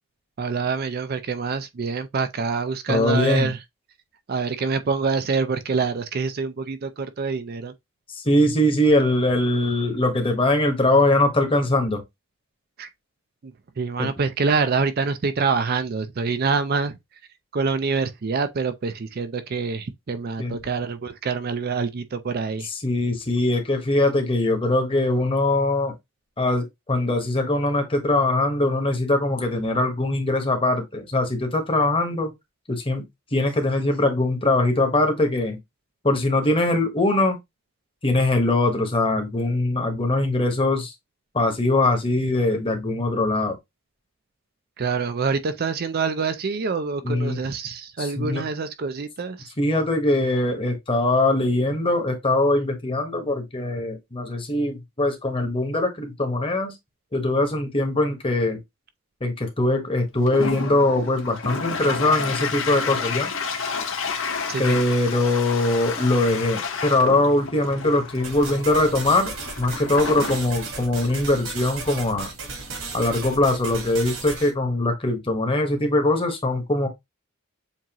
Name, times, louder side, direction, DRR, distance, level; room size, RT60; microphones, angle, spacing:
voice 1, 0.4-3.6 4.3-7.7 12.8-12.9 13.4-17.0 17.5-22.7 44.8-49.5 64.5-64.8, right 4 dB, 45° right, 0.4 m, -26 dB
voice 2, 2.9-3.5 8.1-12.0 14.0-14.1 20.4-20.6 22.8-25.9 26.4-32.3 32.7-33.0 33.3-35.6 36.0-37.4 38.0-40.9 41.3-43.6 47.0-47.4 48.0-48.4 49.6-56.7 57.1-58.6 59.2-63.3 64.6-69.3 69.6-72.3 72.9-76.9, left 2 dB, 25° left, 1.1 m, -22 dB
Toilet flush, 60.1-73.3, left 5 dB, 60° left, 0.9 m, -31 dB
sound 1, 68.2-74.5, right 4 dB, 70° right, 1.5 m, -35 dB
7.2 x 2.5 x 2.9 m
head